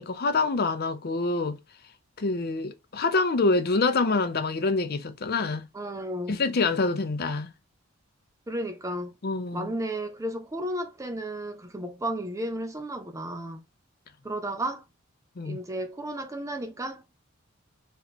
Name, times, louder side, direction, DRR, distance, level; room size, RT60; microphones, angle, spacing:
voice 1, 0.0-1.6 2.2-5.7 6.3-7.5 9.2-9.7 15.4-15.6, left 3 dB, 45° left, 0.6 m, -26 dB
voice 2, 5.7-6.4 8.5-9.1 9.5-13.6 14.2-14.8 15.4-17.2, right 1 dB, 15° right, 0.5 m, -33 dB
3.2 x 2.9 x 4.0 m
head